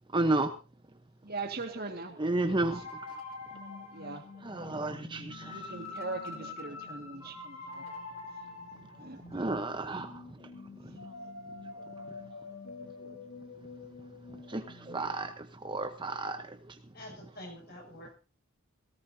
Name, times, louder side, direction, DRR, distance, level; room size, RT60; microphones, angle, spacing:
voice 1, 0.1-0.5 2.2-2.8 4.4-5.6 9.3-10.1 14.5-15.3 15.6-16.4, right 2 dB, 20° right, 0.8 m, -31 dB
voice 2, 1.2-2.2 2.7-2.8 3.9-4.3 5.1-7.8 9.0-9.4 14.3-14.7, right 3 dB, 45° right, 1.8 m, -41 dB
sound 1, 2.6-15.3, left 3 dB, 75° left, 2.7 m, -45 dB
voice 3, 16.9-18.1, left 1 dB, 50° left, 6.9 m, -47 dB
18.0 x 17.5 x 2.7 m
head